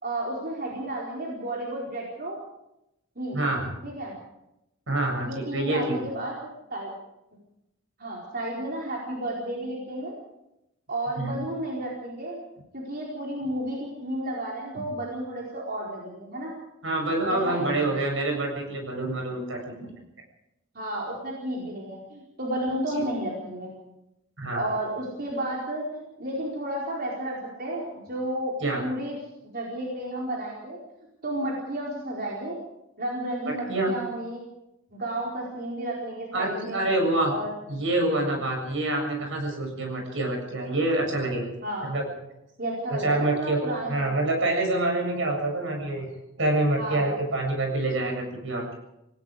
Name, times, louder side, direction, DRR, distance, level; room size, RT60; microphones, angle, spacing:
voice 1, 0.0-2.4 3.2-3.5 3.8-4.1 5.2-6.9 8.0-10.1 10.9-12.4 12.7-16.5 17.3-17.8 20.7-23.7 24.5-28.5 28.8-29.2 29.5-30.8 31.2-32.6 33.0-34.4 34.9-36.9 37.3-37.5 41.6-41.9 42.6-44.1 46.8-47.0, right 1 dB, 50° right, -3 dB, 4.6 m, -32 dB
voice 2, 3.3-3.7 4.9-6.0 11.2-11.4 16.8-19.9 23.0-23.1 24.4-24.7 28.6-28.8 33.7-33.9 36.3-37.3 37.7-41.5 41.8-42.1 43.0-43.6 43.9-46.1 46.4-48.7, right 2 dB, 70° right, 2 dB, 7.4 m, -26 dB
28.0 x 18.5 x 5.1 m, 0.87 s
head